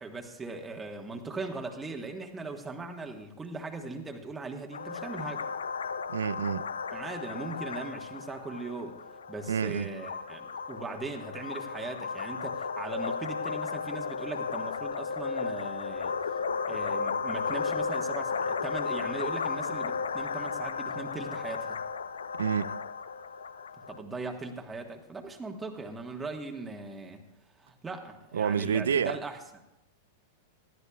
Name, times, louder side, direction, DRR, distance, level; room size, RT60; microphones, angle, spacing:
voice 1, 0.0-5.4 6.9-9.0 9.3-16.1 16.7-21.8 23.9-27.2 27.6-29.4, right 3 dB, 15° right, 1.4 m, -39 dB
sound 1, 4.7-24.0, left 5 dB, 75° left, 0.4 m, -34 dB
voice 2, 6.1-6.7 9.5-9.9 22.4-22.7 28.3-29.2, right 7 dB, 70° right, 0.4 m, -28 dB
19.5 x 13.5 x 2.4 m
figure-of-eight pair, 95°, 0 cm